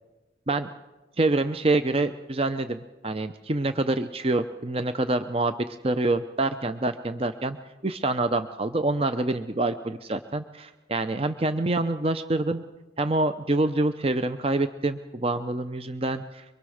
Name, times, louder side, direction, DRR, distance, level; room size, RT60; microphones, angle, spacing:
voice 1, 1.2-7.6 7.8-12.6 13.0-16.4, right 2 dB, 30° right, 9 dB, 0.7 m, -26 dB
24.0 x 23.0 x 6.5 m, 1.1 s
head